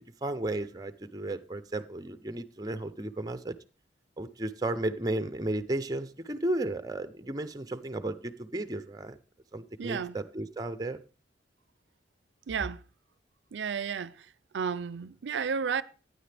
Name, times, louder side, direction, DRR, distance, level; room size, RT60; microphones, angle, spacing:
voice 1, 0.0-3.6 4.2-9.2 9.5-11.0, right 1 dB, 20° right, 0.6 m, -34 dB
voice 2, 9.8-10.1 12.5-12.8 13.5-14.3 14.5-15.8, right 6 dB, 90° right, 0.5 m, -32 dB
15.5 x 9.7 x 3.4 m
head